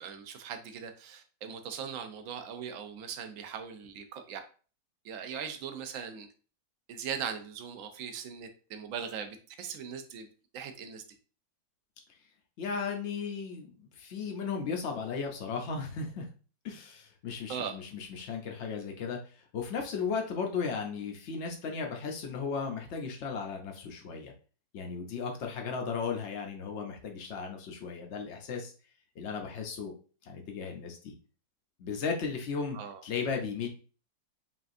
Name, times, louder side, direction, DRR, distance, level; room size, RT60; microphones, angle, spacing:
voice 1, 0.0-4.4 5.0-6.3 6.9-10.3 10.5-11.0 17.5-17.8 32.7-33.0, right 7 dB, 75° right, 7 dB, 0.7 m, -40 dB
voice 2, 12.6-16.3 16.6-19.2 19.5-24.3 24.7-28.7 29.2-29.9 30.2-31.1 31.8-32.8 33.0-33.7, left 5 dB, 75° left, 2 dB, 0.6 m, -35 dB
5.6 x 2.5 x 2.5 m, 0.38 s
omnidirectional pair, 2.0 m